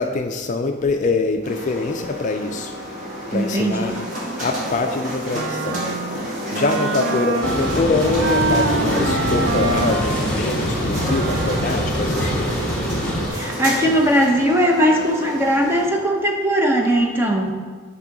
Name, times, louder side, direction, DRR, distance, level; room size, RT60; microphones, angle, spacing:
voice 1, 0.0-2.7 3.3-3.9 4.4-5.8 6.5-12.6, left 3 dB, 35° left, 5 dB, 0.3 m, -24 dB
sound 1, 1.4-15.9, equal, 40° right, 1.7 m, -30 dB
voice 2, 3.3-4.0 13.3-17.5, equal, 10° right, 2 dB, 0.6 m, -19 dB
Wind instrument woodwind instrument, 5.3-11.9, right 2 dB, 70° right, 0.5 m, -26 dB
sound 2, 7.4-13.3, equal, 5° left, 1.1 m, -24 dB
9.0 x 3.7 x 4.7 m, 1.5 s
head